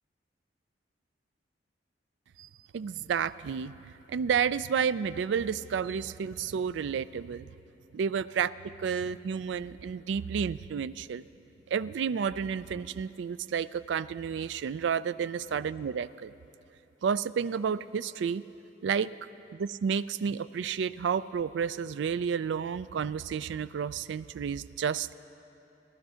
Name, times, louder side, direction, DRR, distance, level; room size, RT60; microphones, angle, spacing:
voice 1, 2.7-3.7 4.1-7.5 7.9-8.5 8.8-11.2 11.7-16.3 17.0-18.4 18.8-19.2 19.5-25.1, right 7 dB, 70° right, 17 dB, 0.3 m, -31 dB
17.5 x 12.0 x 5.6 m, 2.9 s
head